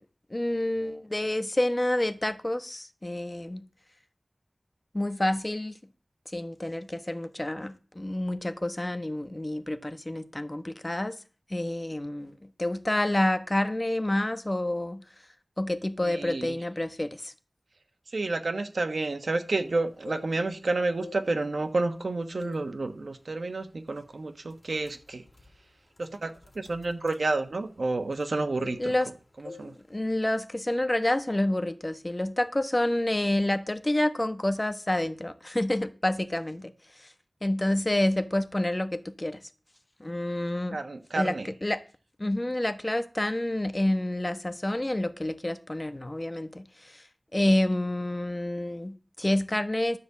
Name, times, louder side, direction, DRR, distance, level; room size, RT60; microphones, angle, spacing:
voice 1, 0.3-3.6 4.9-5.7 6.3-11.2 11.5-15.0 15.6-17.3 28.8-29.1 29.6-37.1 37.4-39.4 40.0-40.8 41.1-41.4 41.6-41.8 42.2-47.0 47.3-50.0, left 1 dB, 30° left, 1.2 m, -28 dB
voice 2, 16.0-16.6 18.1-25.2 26.0-28.9 29.4-29.7 40.7-41.5, right 2 dB, 90° right, 1.3 m, -30 dB
sound 1, 19.8-20.6 20.9-22.0 22.4-22.7 23.1-23.3 24.0-24.1 24.4-28.3 28.6-29.1 29.4-29.7 30.0-30.3, left 3 dB, 55° left, 3.1 m, -47 dB
12.5 x 5.3 x 8.2 m
wide cardioid pair, 55°, 0 cm